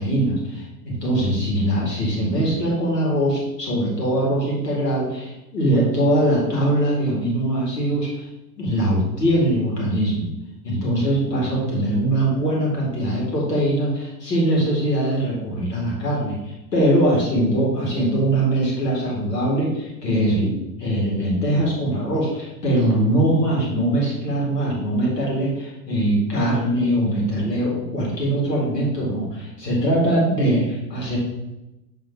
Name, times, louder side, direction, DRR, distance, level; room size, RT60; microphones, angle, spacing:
voice 1, 0.0-8.3 8.6-10.3 10.6-20.5 20.8-31.2, right 1 dB, 70° left, -3 dB, 2.3 m, -22 dB
7.9 x 3.7 x 4.5 m, 0.95 s
figure-of-eight pair, 85°, 49 cm